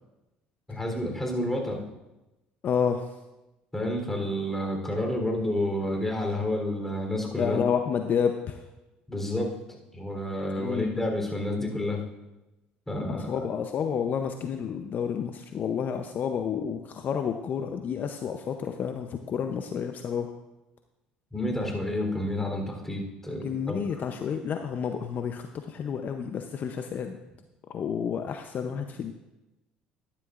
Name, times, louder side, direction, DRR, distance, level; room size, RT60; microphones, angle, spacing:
voice 1, 0.7-1.8 3.7-7.6 9.1-9.5 9.9-12.0 12.9-13.5 21.3-23.8, left 1 dB, 10° left, 1 dB, 3.6 m, -29 dB
voice 2, 2.6-3.1 7.2-8.6 10.6-10.9 13.1-20.3 23.4-27.2 27.7-29.1, left 7 dB, 50° left, 6 dB, 0.7 m, -30 dB
13.0 x 10.5 x 2.5 m, 1.0 s
hypercardioid pair, 70°, 4 cm